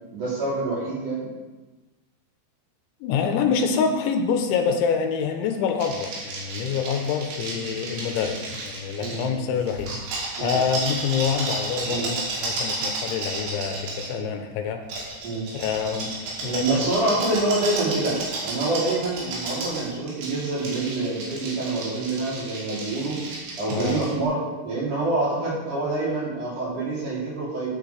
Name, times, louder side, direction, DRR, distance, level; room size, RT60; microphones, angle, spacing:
voice 1, 0.1-1.3 7.5-7.7 9.0-9.4 10.4-10.5 11.9-12.1 14.1-14.3 15.2-15.4 16.4-23.2 23.6-27.7, right 2 dB, 45° right, -7 dB, 4.2 m, -26 dB
voice 2, 3.0-9.9 10.4-14.8 15.5-16.9 23.7-24.0, left 6 dB, 80° left, 5 dB, 3.1 m, -26 dB
sound 1, 5.8-9.3 9.7-14.1 14.9-24.1, right 2 dB, 80° right, 5.1 m, -32 dB
14.5 x 9.3 x 3.4 m, 1.2 s
omnidirectional pair, 5.5 m